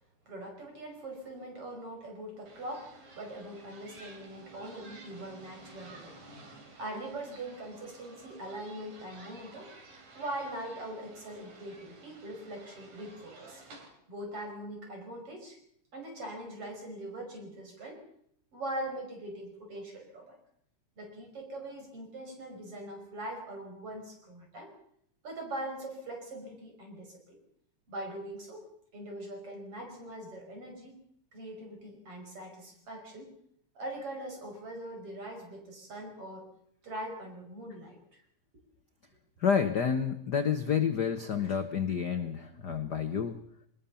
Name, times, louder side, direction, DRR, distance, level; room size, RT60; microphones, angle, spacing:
voice 1, 0.3-6.2 6.8-9.7 10.1-13.6 14.1-15.6 15.9-18.0 18.5-20.4 21.0-24.7 25.2-27.4 27.9-31.0 31.3-33.3 33.8-36.5 36.8-38.2, right 1 dB, 50° right, 3 dB, 6.4 m, -42 dB
sound 1, 2.5-13.9, right 3 dB, 75° right, 4.9 m, -53 dB
voice 2, 39.4-43.4, left 7 dB, 55° left, 8 dB, 1.2 m, -29 dB
22.5 x 20.5 x 7.1 m, 0.68 s
omnidirectional pair, 3.3 m